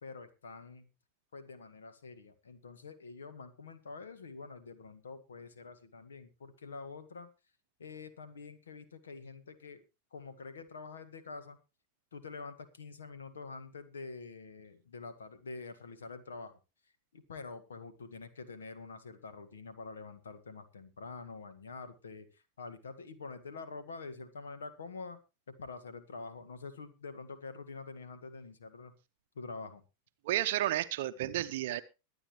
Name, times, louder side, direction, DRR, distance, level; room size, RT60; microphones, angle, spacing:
voice 1, 0.0-0.9 1.3-7.3 7.8-9.8 10.1-11.6 12.1-16.6 17.1-25.2 25.5-28.9 29.4-29.8, left 4 dB, 70° left, 1.8 m, -46 dB
voice 2, 30.2-31.8, right 14 dB, 55° right, 0.7 m, -32 dB
22.0 x 9.0 x 3.1 m
figure-of-eight pair, 90°, 0 cm